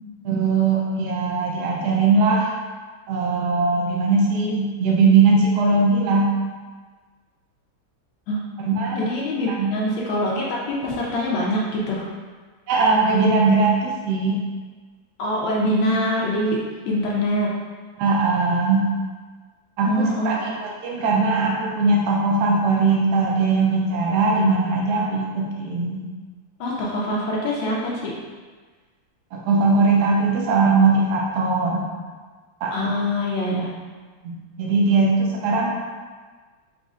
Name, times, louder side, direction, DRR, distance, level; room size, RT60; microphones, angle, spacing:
voice 1, 0.2-2.5 3.1-6.3 8.6-9.0 9.5-9.7 12.7-14.4 18.0-18.9 19.8-26.0 29.3-31.8 32.6-32.7 34.2-35.7, right 3 dB, 70° right, -2 dB, 1.0 m, -20 dB
voice 2, 8.9-12.1 15.2-17.5 19.8-20.5 26.6-28.2 32.7-33.7, equal, 80° left, -4 dB, 1.4 m, -24 dB
5.2 x 3.1 x 2.4 m, 1.4 s
omnidirectional pair, 2.1 m